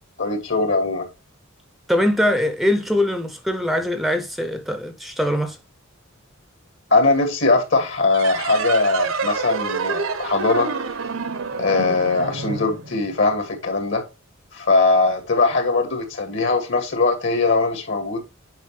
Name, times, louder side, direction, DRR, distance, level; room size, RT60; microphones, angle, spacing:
voice 1, 0.2-1.1 6.9-10.7 11.6-14.0 14.5-18.2, left 3 dB, 60° left, 2.2 m, -20 dB
voice 2, 1.9-5.6, left 1 dB, ahead, 0.6 m, -22 dB
sound 1, 8.1-13.4, right 4 dB, 70° right, 0.9 m, -27 dB
8.5 x 5.1 x 3.3 m
head